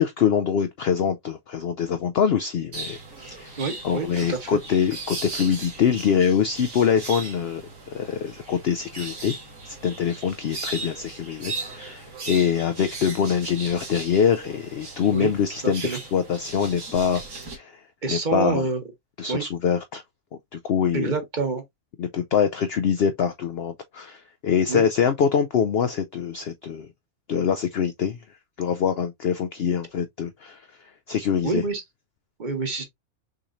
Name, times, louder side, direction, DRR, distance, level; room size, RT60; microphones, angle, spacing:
voice 1, 0.0-3.5 3.8-7.6 7.9-9.3 9.7-17.8 18.1-18.7 19.2-20.0 20.5-21.1 22.0-26.9 27.3-28.2 28.6-31.6, left 7 dB, 65° left, 0.6 m, -24 dB
sound 1, 2.7-17.6, right 3 dB, 55° right, 2.0 m, -38 dB
voice 2, 3.6-4.6 15.1-15.3 15.6-16.0 18.0-18.8 19.3-19.4 20.9-21.6 24.7-24.8 31.4-31.8 32.4-32.9, right 4 dB, 35° right, 1.1 m, -27 dB
6.3 x 3.0 x 2.5 m
omnidirectional pair, 1.5 m